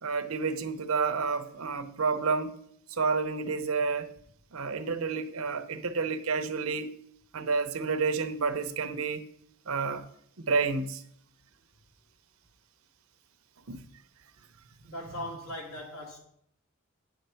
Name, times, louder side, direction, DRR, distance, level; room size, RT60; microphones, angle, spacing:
voice 1, 0.0-2.6 2.9-4.1 4.5-6.9 7.3-9.2 9.7-10.1 10.4-11.0 13.7-13.8, right 4 dB, 85° right, 0.8 m, -30 dB
voice 2, 14.8-16.2, left 1 dB, 85° left, 2.5 m, -39 dB
9.1 x 6.7 x 4.5 m
head